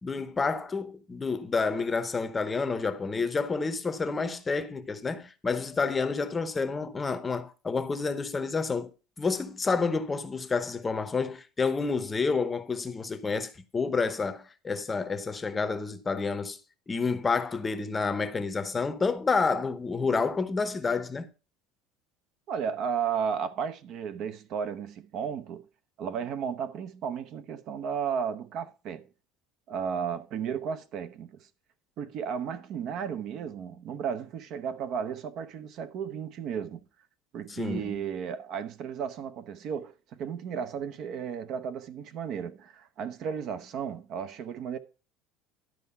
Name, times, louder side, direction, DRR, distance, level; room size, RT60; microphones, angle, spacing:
voice 1, 0.0-8.9 9.2-16.6 16.9-21.3 37.5-37.9, left 4 dB, 15° left, 0.8 m, -29 dB
voice 2, 22.5-25.7 26.0-29.1 29.7-31.5 32.0-36.8 37.3-39.9 40.2-44.8, right 7 dB, 50° right, 0.8 m, -34 dB
12.0 x 4.7 x 5.5 m
cardioid pair, 140°, 0 cm